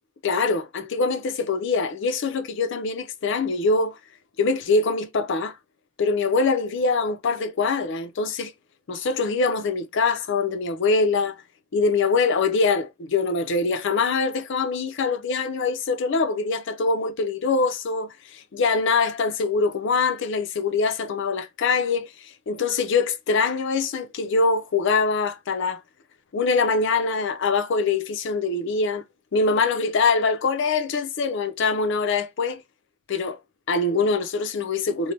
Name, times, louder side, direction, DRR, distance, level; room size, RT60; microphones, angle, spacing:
voice 1, 0.2-4.0 4.4-5.6 6.0-8.5 8.9-11.4 11.7-25.8 26.3-29.0 29.3-32.6 33.1-33.4 33.7-35.1, left 4 dB, 65° left, 0.5 m, -23 dB
3.2 x 2.1 x 2.6 m
head